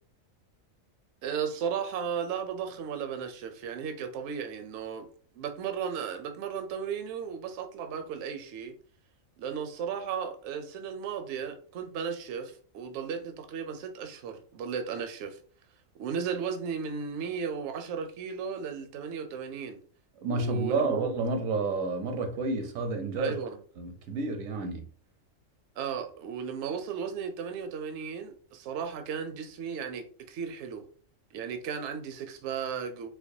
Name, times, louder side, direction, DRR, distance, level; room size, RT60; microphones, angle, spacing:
voice 1, 1.2-5.1 5.3-8.7 9.4-15.4 16.0-19.8 20.3-21.1 23.2-23.6 25.8-30.9 31.3-33.1, right 7 dB, 70° right, 0.8 m, -35 dB
voice 2, 20.2-23.3 23.8-24.9, right 3 dB, 85° right, 1.1 m, -30 dB
4.5 x 2.1 x 2.7 m
omnidirectional pair, 1.4 m